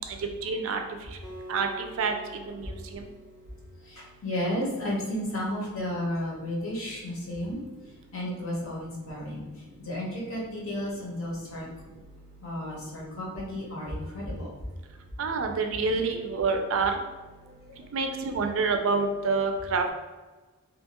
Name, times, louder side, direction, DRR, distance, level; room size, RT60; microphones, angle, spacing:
voice 1, 0.4-0.8 1.5-2.1 2.6-2.7 15.2-16.9 17.9-19.9, right 4 dB, 60° right, 5 dB, 0.3 m, -27 dB
Acoustic guitar, 1.2-4.5, equal, 20° left, 0.5 m, -47 dB
voice 2, 3.8-7.6 8.1-9.4 9.8-11.6 12.4-14.5 17.4-17.8, left 1 dB, 65° left, -4 dB, 0.9 m, -33 dB
2.7 x 2.2 x 2.8 m, 1.3 s
head